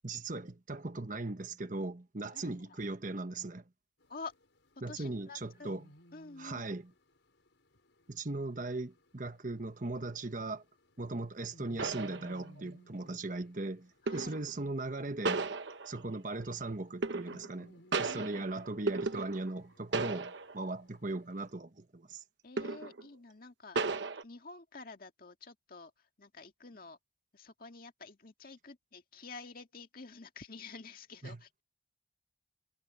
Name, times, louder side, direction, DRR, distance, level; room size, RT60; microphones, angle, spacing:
voice 1, 0.0-3.6 4.8-5.9 6.4-6.9 8.1-10.6 11.0-15.5 15.8-22.2 31.2-31.4, right 2 dB, 45° right, 1.2 m, -38 dB
sound 1, 4.0-21.5, equal, 75° left, 4.9 m, -62 dB
voice 2, 4.9-5.7 6.1-6.7 14.0-14.4 18.0-18.5 22.4-24.0 24.2-25.9 26.2-27.0 27.3-31.6, left 4 dB, 50° left, 2.1 m, -49 dB
sound 2, 11.2-11.3 11.8-12.7 14.1-14.5 15.2-16.2 17.0-17.6 17.9-19.6 19.9-20.7 21.1-21.2 22.6-23.1 23.7-24.2, right 3 dB, 70° right, 1.0 m, -35 dB
head